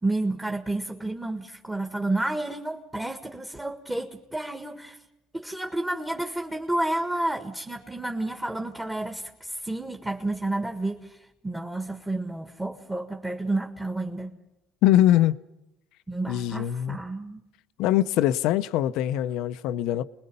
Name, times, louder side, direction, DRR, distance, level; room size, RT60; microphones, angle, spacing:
voice 1, 0.0-5.0 5.3-11.2 11.4-14.4 16.1-17.4, right 2 dB, 10° right, 1.7 m, -30 dB
voice 2, 14.8-15.4 16.3-17.0 17.8-20.0, left 12 dB, 75° left, 0.7 m, -22 dB
29.0 x 20.5 x 5.4 m
supercardioid pair, 80°, 0 cm